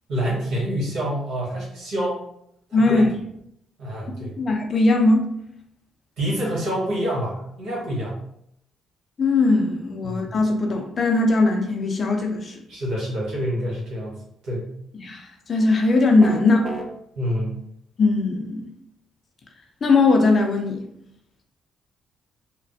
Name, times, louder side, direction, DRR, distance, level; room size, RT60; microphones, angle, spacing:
voice 1, 0.1-2.2 2.7-3.1 3.8-4.3 6.2-8.2 10.0-10.3 12.7-14.2 14.4-14.7 17.2-17.6, equal, 85° right, -6 dB, 1.3 m, -27 dB
voice 2, 2.7-3.1 4.1-5.3 9.2-12.6 15.0-15.2 15.5-16.7 18.0-18.7 19.8-20.8, left 3 dB, 45° left, 2 dB, 0.5 m, -19 dB
sound 1, 16.2-16.9, right 1 dB, 25° right, 0.5 m, -30 dB
3.1 x 2.1 x 2.6 m, 0.74 s
cardioid pair, 90°, 0 cm